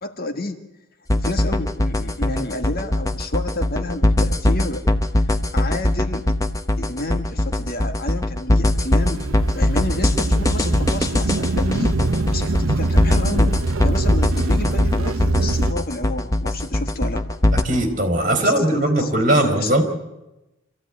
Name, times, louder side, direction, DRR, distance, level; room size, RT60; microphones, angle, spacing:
voice 1, 0.0-0.6 1.2-4.8 5.2-6.3 6.8-9.3 9.5-13.5 13.8-17.2 18.4-19.7, left 2 dB, 45° left, 7 dB, 1.8 m, -30 dB
sound 1, 1.1-17.6, left 1 dB, 15° left, 1.1 m, -20 dB
sound 2, 8.6-15.7, right 2 dB, 80° right, 0.8 m, -24 dB
voice 2, 17.5-19.8, right 1 dB, 40° right, 5 dB, 3.7 m, -19 dB
26.5 x 15.0 x 9.7 m, 0.99 s
head